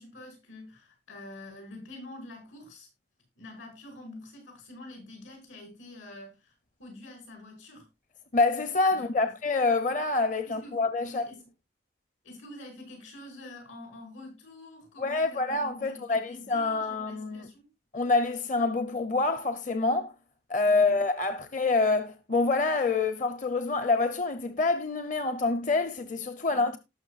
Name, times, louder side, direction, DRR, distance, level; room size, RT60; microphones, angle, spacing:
voice 1, 0.0-2.9 3.4-6.5 6.8-7.9 8.9-9.3 10.4-11.4 12.2-17.7 20.7-21.0 26.5-26.7, left 1 dB, 85° left, 6.3 m, -47 dB
voice 2, 8.3-11.3 15.0-17.5 17.9-20.1 20.5-26.8, left 3 dB, 40° left, 0.8 m, -26 dB
18.5 x 6.3 x 2.5 m
head